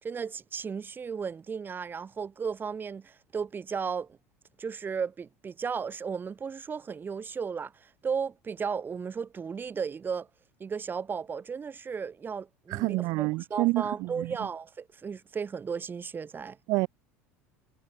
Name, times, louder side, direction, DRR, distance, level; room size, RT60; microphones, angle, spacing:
voice 1, 0.0-4.2 4.6-10.3 10.6-16.6, right 6 dB, 30° right, 3.5 m, -35 dB
voice 2, 12.7-14.3 16.7-16.9, right 23 dB, 65° right, 0.8 m, -28 dB
hypercardioid pair, 85°, 7 cm